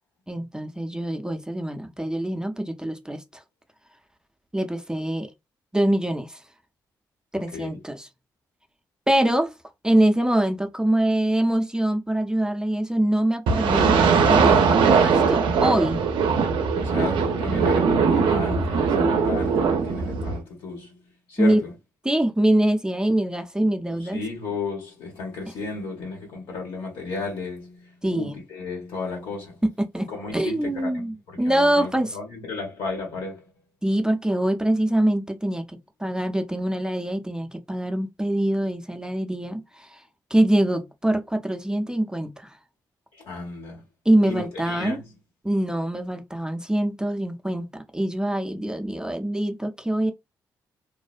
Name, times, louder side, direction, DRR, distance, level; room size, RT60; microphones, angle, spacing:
voice 1, 0.3-3.2 4.5-5.3 5.7-6.4 7.3-8.1 9.1-9.5 9.8-13.9 14.3-16.0 21.4-21.6 22.0-24.2 28.0-28.4 29.6-30.1 30.3-32.2 33.8-40.0 40.3-42.5 44.1-45.0 45.4-50.1, right 1 dB, 10° right, 0.5 m, -24 dB
voice 2, 7.3-7.8 16.8-21.0 21.3-21.7 24.0-29.6 30.1-33.4 43.1-43.8 44.3-45.0, left 4 dB, 75° left, 1.3 m, -34 dB
sound 1, 13.5-20.4, right 5 dB, 70° right, 0.4 m, -20 dB
2.5 x 2.0 x 2.4 m
hypercardioid pair, 40°, 9 cm